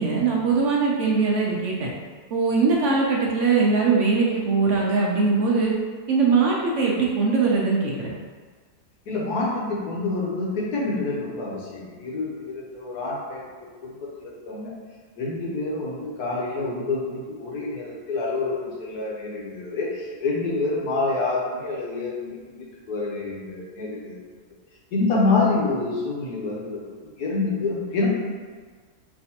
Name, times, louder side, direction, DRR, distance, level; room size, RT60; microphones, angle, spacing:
voice 1, 0.0-1.9 2.3-5.7 6.1-8.1, right 4 dB, 65° right, -3 dB, 0.9 m, -21 dB
voice 2, 9.1-13.4 13.8-14.7 15.2-24.2 24.9-28.1, left 3 dB, 80° left, -4 dB, 1.5 m, -27 dB
4.8 x 3.3 x 2.8 m, 1.5 s
omnidirectional pair, 1.6 m